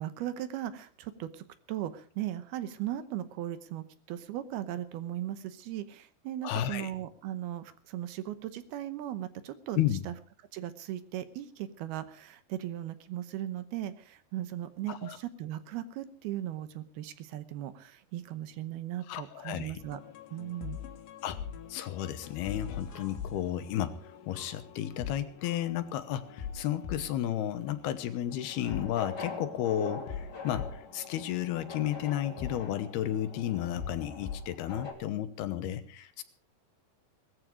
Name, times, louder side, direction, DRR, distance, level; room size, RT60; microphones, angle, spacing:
voice 1, 0.0-10.1 10.5-20.0 20.3-20.8, right 12 dB, 75° right, 12 dB, 2.7 m, -38 dB
voice 2, 6.4-6.9 9.8-10.0 14.9-15.2 19.1-19.8 21.2-21.4 21.7-36.2, left 11 dB, 75° left, 11 dB, 2.9 m, -33 dB
sound 1, 19.8-34.4, left 7 dB, 90° left, 3.8 m, -44 dB
sound 2, 22.3-28.9, equal, 5° right, 7.6 m, -60 dB
sound 3, 28.3-34.9, left 4 dB, 30° left, 2.7 m, -43 dB
18.5 x 14.0 x 5.0 m, 0.42 s
omnidirectional pair, 4.9 m